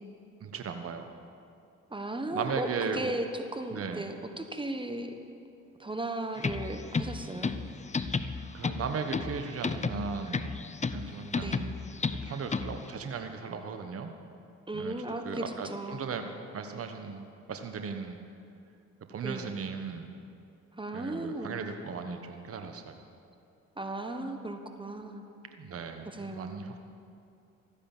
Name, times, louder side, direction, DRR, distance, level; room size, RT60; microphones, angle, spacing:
voice 1, 0.4-1.1 2.3-3.1 3.7-4.1 8.5-10.6 10.9-11.6 12.1-14.1 14.7-14.9 15.2-18.2 19.1-20.1 20.9-23.0 25.6-26.8, right 5 dB, 50° right, 6 dB, 1.1 m, -37 dB
voice 2, 1.9-5.2 5.8-7.5 11.4-11.6 14.7-16.2 19.2-19.5 20.8-21.6 23.8-25.2 26.0-26.6, right 2 dB, 15° right, 6 dB, 1.2 m, -36 dB
sound 1, 6.4-12.9, left 4 dB, 25° left, 0.7 m, -33 dB
14.0 x 9.9 x 7.2 m, 2.5 s
supercardioid pair, 60°, 30 cm